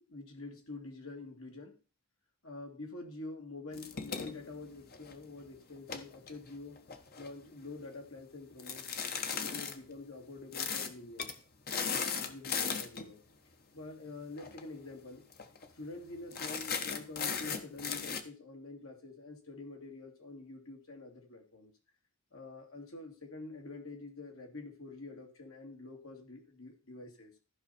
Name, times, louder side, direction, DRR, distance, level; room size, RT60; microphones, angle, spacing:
voice 1, 0.1-1.8 2.4-6.8 7.2-8.9 9.3-11.3 11.8-13.2 13.7-15.2 15.7-21.7 22.3-27.3, left 3 dB, 70° left, 2 dB, 2.5 m, -47 dB
sound 1, 3.7-5.3 5.8-7.3 8.6-9.8 10.5-10.9 11.2-11.4 11.7-13.1 14.4-14.6 14.9-15.0 15.3-15.7 16.3-18.2, left 6 dB, 45° left, 1.2 m, -37 dB
14.0 x 5.6 x 4.4 m, 0.36 s
head